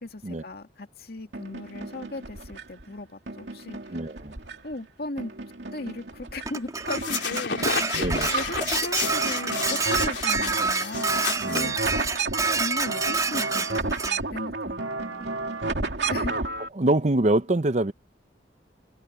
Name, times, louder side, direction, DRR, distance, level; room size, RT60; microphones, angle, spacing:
voice 1, 0.0-4.0 4.6-5.3 5.7-7.8 8.3-11.8 12.6-15.3 16.1-16.5, left 2 dB, 55° left, 2.2 m, -37 dB
sound 1, 1.3-2.8 3.3-4.8 5.2-6.5 6.8-16.7, right 3 dB, 70° right, 2.8 m, -32 dB
voice 2, 3.9-4.3 8.0-8.3 11.4-11.7 15.2-15.3 16.8-17.9, right 1 dB, 40° right, 0.8 m, -24 dB
Dishes pots and pans, 6.5-14.2, right 4 dB, 20° right, 3.1 m, -28 dB
sound 2, 6.9-12.2, left 6 dB, 70° left, 3.3 m, -32 dB
head